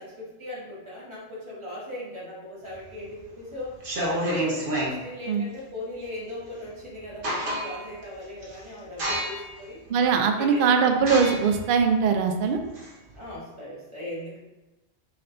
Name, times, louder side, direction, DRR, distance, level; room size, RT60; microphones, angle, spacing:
voice 1, 0.0-3.8 4.1-9.8 10.4-10.9 13.1-14.4, left 1 dB, 25° right, -7 dB, 1.4 m, -38 dB
sound 1, 2.8-3.2 3.7-5.0 6.6-6.7 7.0-7.9 8.4-8.6 9.0-9.6 10.1-10.2 11.0-13.3, right 1 dB, 45° right, 1.1 m, -29 dB
voice 2, 9.9-12.6, right 6 dB, 60° right, 5 dB, 0.5 m, -21 dB
4.2 x 4.2 x 2.6 m, 1.1 s
omnidirectional pair, 1.3 m